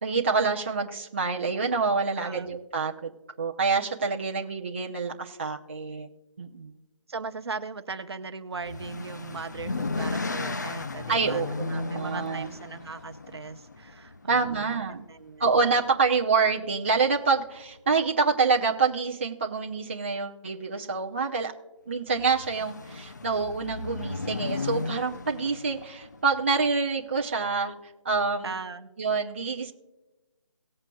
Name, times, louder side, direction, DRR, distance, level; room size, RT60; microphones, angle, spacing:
voice 1, 0.0-3.1 3.4-6.1 6.4-6.7 11.1-12.5 14.3-15.1 15.4-21.5 21.9-27.7 28.0-28.5 29.0-29.7, right 4 dB, 25° right, -1 dB, 0.6 m, -27 dB
voice 2, 2.2-2.5 7.1-14.8 15.1-15.4 28.4-28.9, right 4 dB, 55° right, 9 dB, 0.9 m, -38 dB
sound 1, 8.6-14.7 15.8-16.2 16.5-16.6 16.9-17.0 22.1-26.5, left 3 dB, 35° left, 0.4 m, -35 dB
19.0 x 8.7 x 2.3 m, 1.1 s
hypercardioid pair, 175°, 16 cm